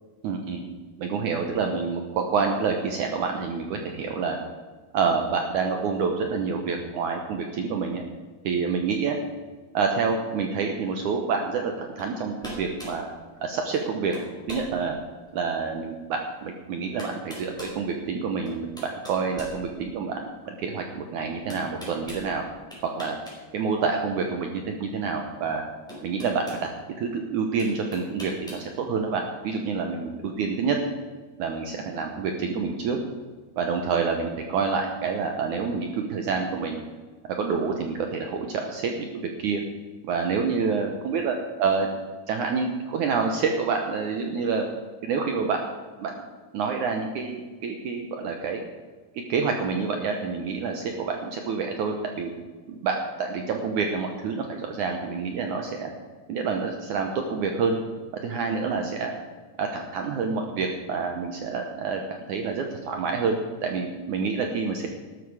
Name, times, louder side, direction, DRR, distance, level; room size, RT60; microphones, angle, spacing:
voice 1, 0.2-0.6 1.0-4.4 4.9-8.0 8.4-9.2 9.7-13.1 13.4-14.2 14.5-15.0 15.3-22.4 22.8-23.2 23.5-25.6 26.0-26.7 27.0-30.8 31.4-33.0 33.6-36.8 37.4-39.1 39.4-39.6 40.0-41.9 42.3-44.7 45.0-45.6 46.0-46.1 46.5-48.6 49.3-52.3 52.7-55.9 56.3-57.8 58.2-59.1 59.6-62.0 62.3-64.9, right 5 dB, 75° right, 3 dB, 1.8 m, -27 dB
sound 1, 12.0-12.1 12.4-13.0 13.7-13.9 14.1-14.7 15.3-15.4 16.5-16.6 17.0-17.8 18.5-20.1 21.5-22.3 22.7-23.4 23.7-23.8 25.2-25.3 25.9-26.6 27.6-28.7, equal, ahead, 4.2 m, -40 dB
13.0 x 12.5 x 4.8 m, 1.5 s
omnidirectional pair, 4.7 m